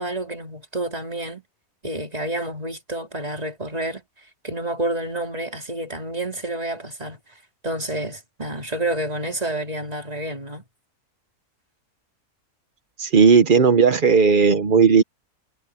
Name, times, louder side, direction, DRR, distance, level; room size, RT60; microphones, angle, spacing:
voice 1, 0.0-1.4 1.8-4.0 4.4-7.2 7.6-10.6, right 1 dB, 25° right, 3.5 m, -29 dB
voice 2, 13.0-15.0, right 5 dB, 40° right, 0.9 m, -15 dB
omnidirectional pair, 1.6 m